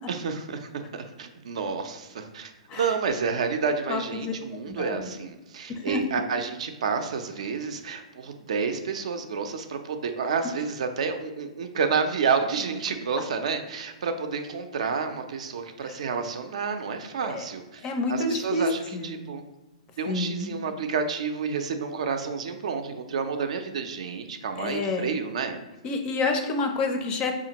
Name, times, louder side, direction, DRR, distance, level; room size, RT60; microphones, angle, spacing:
voice 1, 0.1-19.4 20.0-25.6, right 5 dB, 70° right, 7 dB, 0.4 m, -30 dB
voice 2, 3.9-4.3 4.6-5.1 5.7-6.0 17.3-17.4 17.8-18.6 18.9-19.1 20.1-20.6 24.6-25.1 25.8-27.4, left 3 dB, 25° left, 5 dB, 0.4 m, -28 dB
5.0 x 2.4 x 2.8 m, 1.1 s
hypercardioid pair, 150°, 4 cm